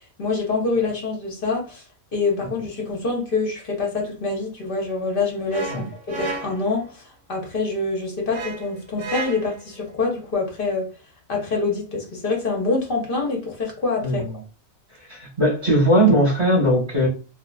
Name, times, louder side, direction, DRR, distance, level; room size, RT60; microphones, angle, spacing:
voice 1, 0.2-1.8 2.1-10.9 11.3-14.2, left 3 dB, 50° left, 0.7 m, -25 dB
sound 1, 5.5-6.8 8.3-9.7, right 3 dB, 70° right, 0.9 m, -32 dB
voice 2, 14.0-14.3 15.1-17.1, right 1 dB, 20° right, 0.8 m, -19 dB
2.6 x 2.3 x 2.2 m
omnidirectional pair, 1.5 m